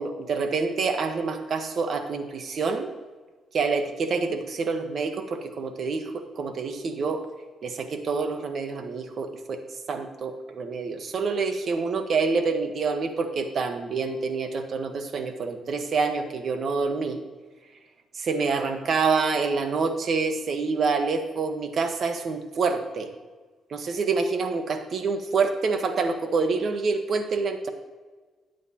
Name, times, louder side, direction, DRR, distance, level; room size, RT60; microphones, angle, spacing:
voice 1, 0.0-2.9 3.5-7.3 7.6-9.6 9.9-17.2 18.1-23.1 23.7-27.7, right 4 dB, 55° right, 6 dB, 1.3 m, -27 dB
12.5 x 9.3 x 3.0 m, 1.3 s
cardioid pair, 90°, 0 cm